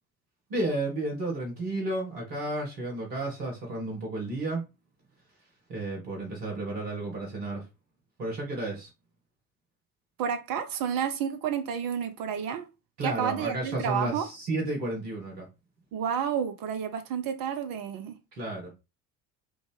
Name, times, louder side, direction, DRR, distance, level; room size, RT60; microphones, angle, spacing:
voice 1, 0.5-4.6 5.7-7.6 8.2-8.9 13.0-15.5 18.3-18.8, right 2 dB, 85° right, 1.3 m, -32 dB
voice 2, 10.2-12.7 13.0-14.3 15.9-18.2, right 8 dB, 45° right, 0.6 m, -30 dB
3.4 x 2.5 x 3.3 m
figure-of-eight pair, 55°, 47 cm